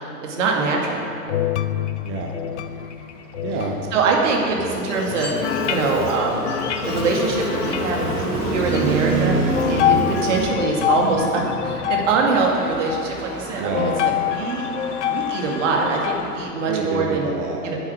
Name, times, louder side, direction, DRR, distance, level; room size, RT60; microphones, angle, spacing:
voice 1, 0.0-1.0 3.9-6.4 6.8-9.3 9.7-13.9 14.3-14.7 15.0-17.3 17.6-17.8, right 3 dB, 50° right, -1 dB, 2.3 m, -23 dB
sound 1, 0.9-4.8 5.4-8.0 8.5-8.8 9.5-16.2, left 10 dB, 50° left, 0.5 m, -26 dB
voice 2, 2.0-2.4 3.4-3.8 10.0-10.4 13.6-14.0 16.6-17.7, right 5 dB, 15° right, 0 dB, 0.5 m, -28 dB
Traffic noise roadway noise, 2.7-16.4, right 3 dB, 80° right, 3.1 m, -30 dB
Buzz, 4.9-10.5, left 3 dB, 70° left, 1.8 m, -31 dB
10.5 x 7.1 x 7.7 m, 2.6 s
figure-of-eight pair, 110°, 47 cm